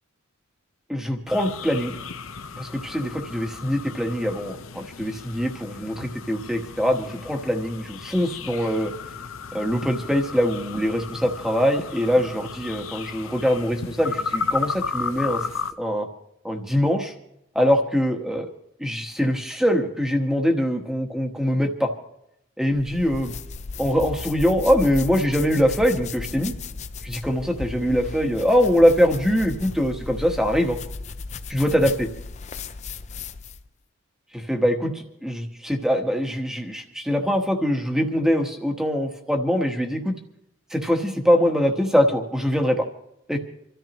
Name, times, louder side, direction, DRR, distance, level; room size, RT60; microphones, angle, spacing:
voice 1, 0.9-2.0 2.6-8.9 9.5-15.5 15.8-16.1 16.4-17.1 17.5-18.5 18.8-21.9 22.6-23.3 23.8-26.5 27.0-30.8 31.5-32.1 34.3-40.1 40.7-42.8 43.3-43.4, equal, ahead, 3 dB, 1.2 m, -23 dB
sound 1, 1.3-15.7, left 5 dB, 70° left, 0.7 m, -34 dB
sound 2, 22.7-33.7, left 4 dB, 35° left, 0.5 m, -35 dB
27.5 x 13.5 x 3.0 m, 0.79 s
head